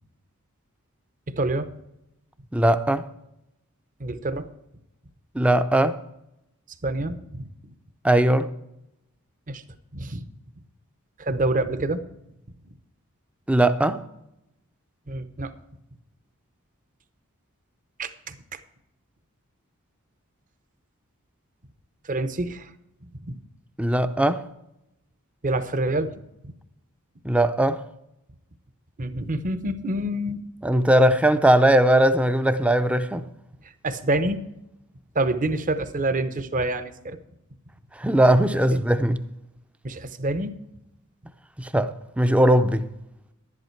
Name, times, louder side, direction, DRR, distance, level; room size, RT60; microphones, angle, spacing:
voice 1, 1.4-1.7 4.0-4.5 6.8-7.5 9.5-9.6 9.9-10.2 11.2-12.0 15.1-15.5 18.0-18.4 22.1-22.7 23.2-23.4 25.4-26.1 26.4-26.5 29.0-30.4 33.8-34.4 35.1-37.2 38.7-38.8 39.8-40.5, right 2 dB, 35° right, 0.8 m, -27 dB
voice 2, 2.5-3.1 5.3-6.0 8.0-8.5 13.5-14.0 23.8-24.4 27.2-27.8 30.6-33.3 38.0-39.2 41.6-42.9, right 1 dB, 5° right, 0.5 m, -19 dB
11.5 x 11.0 x 4.5 m
head